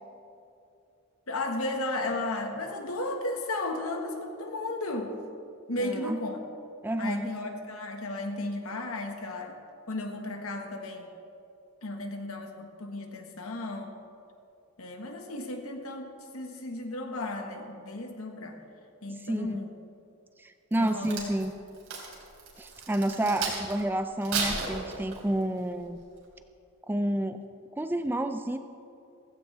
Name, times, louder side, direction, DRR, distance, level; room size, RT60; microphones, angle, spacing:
voice 1, 1.3-5.1 5.7-6.4 7.0-9.5 9.9-11.1 11.8-13.9 14.8-18.6 19.0-19.7 20.8-21.3 23.2-23.3, left 2 dB, 80° left, 4 dB, 1.5 m, -34 dB
voice 2, 5.8-6.2 6.8-7.3 19.2-19.6 20.4-21.5 22.6-26.0 26.9-27.4 27.8-28.6, right 1 dB, 10° right, 9 dB, 0.3 m, -30 dB
Crack, 20.7-23.8 24.2-25.4 25.9-26.2, right 4 dB, 80° right, 3.2 m, -34 dB
16.0 x 15.5 x 3.4 m, 2.6 s
head